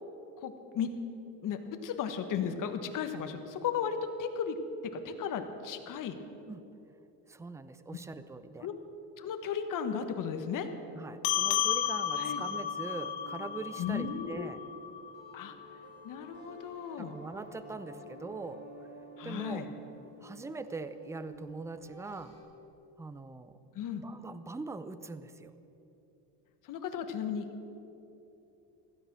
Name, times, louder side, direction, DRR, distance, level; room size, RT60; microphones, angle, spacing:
voice 1, 0.4-0.9 1.4-4.6 4.8-6.2 8.6-8.7 9.2-10.7 12.2-12.4 13.8-14.5 15.3-15.5 16.0-17.1 19.2-19.7 23.7-24.0 26.6-27.4, left 7 dB, 50° left, 7 dB, 1.5 m, -35 dB
voice 2, 7.3-8.7 10.9-14.6 17.0-18.9 19.2-19.6 20.2-22.3 23.0-23.6 24.0-25.5, right 3 dB, 5° right, 12 dB, 0.5 m, -42 dB
sound 1, 10.7-22.4, right 2 dB, 30° right, 4.7 m, -52 dB
sound 2, 11.2-16.0, left 10 dB, 85° left, 1.0 m, -33 dB
16.0 x 13.5 x 6.2 m, 3.0 s
cardioid pair, 125°, 40 cm